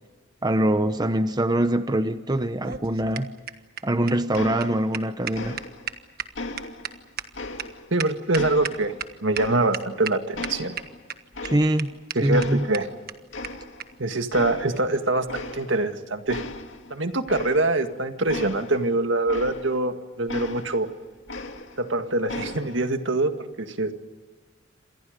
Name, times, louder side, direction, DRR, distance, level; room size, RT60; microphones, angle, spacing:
voice 1, 0.4-3.3 3.8-5.6 11.4-11.9 12.2-12.7, right 1 dB, 20° right, 10 dB, 0.9 m, -23 dB
sound 1, 2.4-9.1 9.4-9.5 9.7-10.1 10.4-11.1 11.4-11.5 11.8-11.9 12.1-12.2 12.4-12.5 12.7-12.8 13.1-13.2 13.4-13.5 13.8-13.9 14.7-14.9, right 8 dB, 50° right, 1.4 m, -33 dB
sound 2, 4.3-5.1 5.3-6.0 6.3-8.0 8.3-10.0 10.3-12.0 12.3-13.0 13.3-14.0 14.3-14.9 15.3-15.9 16.3-19.9 20.3-21.9 22.3-22.9, left 2 dB, 75° left, 2.4 m, -37 dB
voice 2, 7.9-8.9 9.2-10.7 12.1-12.9 14.0-16.4 16.9-20.9 21.8-23.9, right 2 dB, 70° right, 7 dB, 1.9 m, -24 dB
28.5 x 27.0 x 5.3 m, 1.4 s
head